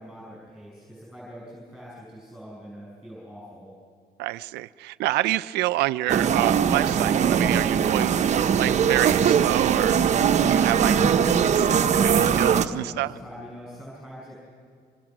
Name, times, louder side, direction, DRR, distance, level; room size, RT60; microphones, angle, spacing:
voice 1, 0.0-3.7 10.9-14.4, equal, ahead, -7 dB, 7.7 m, -41 dB
voice 2, 4.2-8.2 8.5-11.0 12.0-13.1, right 17 dB, 80° right, 15 dB, 0.5 m, -27 dB
sound 1, 6.1-12.7, right 7 dB, 45° right, 0.9 m, -21 dB
25.5 x 24.5 x 6.1 m, 2.1 s
cardioid pair, 110°, 17 cm